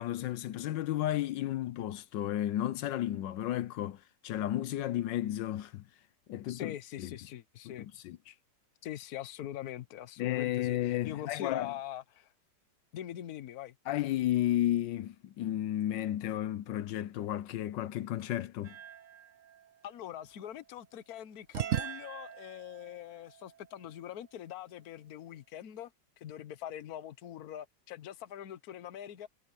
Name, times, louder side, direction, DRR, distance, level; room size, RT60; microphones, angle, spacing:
voice 1, 0.0-5.9 6.3-7.2 7.6-8.3 10.2-11.7 13.9-18.8, left 13 dB, 85° left, 1.4 m, -33 dB
voice 2, 6.5-7.9 8.8-12.3 12.9-13.7 19.8-25.9 26.2-29.3, left 11 dB, 60° left, 1.3 m, -43 dB
sound 1, 18.6-20.8 21.5-24.4, right 10 dB, 55° right, 1.0 m, -40 dB
omnidirectional pair, 1.9 m